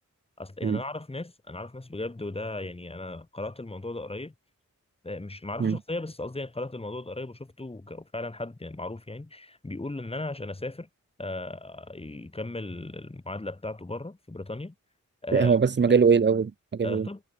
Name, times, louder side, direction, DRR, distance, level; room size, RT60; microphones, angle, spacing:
voice 1, 0.4-4.3 5.0-10.9 11.2-14.7 15.2-15.5 15.9-16.0 16.8-17.2, left 2 dB, 20° left, 1.5 m, -36 dB
voice 2, 15.3-17.1, right 6 dB, 35° right, 0.7 m, -22 dB
wide cardioid pair, 75°, 31 cm